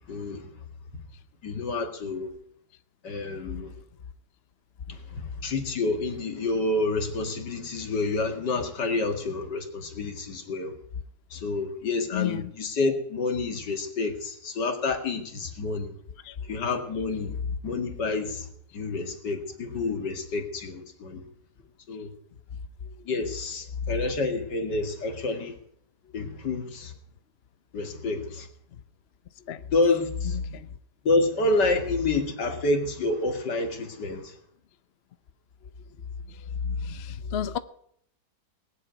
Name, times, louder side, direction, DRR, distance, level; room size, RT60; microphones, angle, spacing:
voice 1, 0.1-0.5 1.4-2.3 3.0-3.7 4.9-10.7 11.3-15.9 16.5-17.4 17.6-18.5 18.7-21.2 21.9-22.1 23.1-25.5 26.1-26.9 27.7-28.5 29.7-30.4 31.0-34.3, left 3 dB, 80° left, 2.5 m, -28 dB
voice 2, 12.1-12.5 16.2-16.4 29.5-29.6 30.4-30.7 36.6-37.6, left 8 dB, 50° left, 0.8 m, -31 dB
19.0 x 7.8 x 9.0 m
omnidirectional pair, 1.8 m